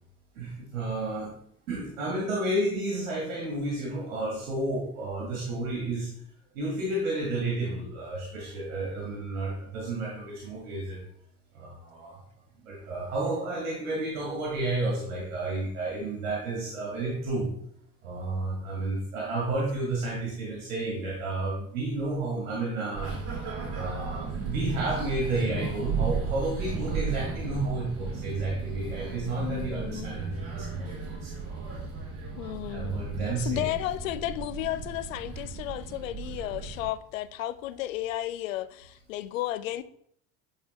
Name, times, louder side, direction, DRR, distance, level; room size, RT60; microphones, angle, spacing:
voice 1, 0.4-1.4 1.7-6.1 6.5-11.0 11.5-12.2 12.6-17.5 18.0-23.1 23.7-31.3 32.7-33.7, right 2 dB, 65° right, 1.6 m, -31 dB
sound 1, 22.9-36.9, right 5 dB, 35° right, 2.4 m, -35 dB
voice 2, 29.4-30.4 32.4-33.1 33.4-39.8, left 14 dB, 65° left, 0.5 m, -33 dB
8.6 x 3.9 x 3.1 m
figure-of-eight pair, 65°, 44 cm